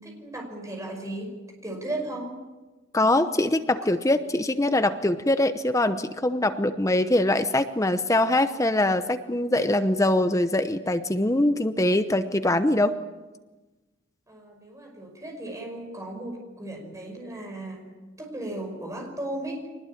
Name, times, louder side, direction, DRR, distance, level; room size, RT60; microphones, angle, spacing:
voice 1, 0.0-2.4 14.3-17.9 18.2-19.7, right 1 dB, 15° right, 2 dB, 5.5 m, -36 dB
voice 2, 2.9-13.0, left 1 dB, 15° left, 9 dB, 0.8 m, -23 dB
24.5 x 20.0 x 8.7 m, 1.2 s
head